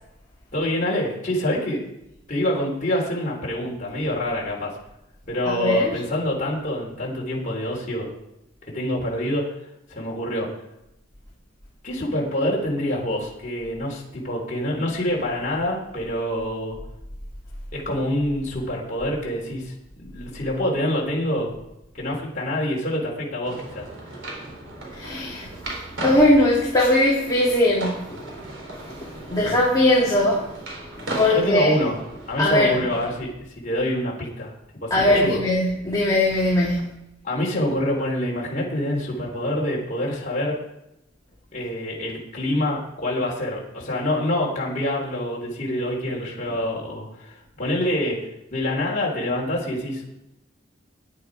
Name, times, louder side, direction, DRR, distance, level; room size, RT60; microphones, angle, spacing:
voice 1, 0.5-1.8 2.3-4.8 5.3-8.1 8.6-9.6 9.9-10.5 11.8-16.8 17.7-21.6 21.9-23.9 31.2-34.5 34.8-35.4 37.2-40.6 41.5-48.2 48.5-50.1, left 1 dB, 40° left, -3 dB, 3.7 m, -26 dB
voice 2, 5.4-5.9 24.9-25.5 26.0-28.2 28.8-30.5 31.0-31.7 32.4-32.8 34.9-36.9, left 1 dB, 20° left, -5 dB, 2.6 m, -20 dB
sound 1, 23.4-33.2, right 2 dB, 70° right, 4.1 m, -36 dB
17.5 x 10.5 x 4.9 m, 0.89 s
head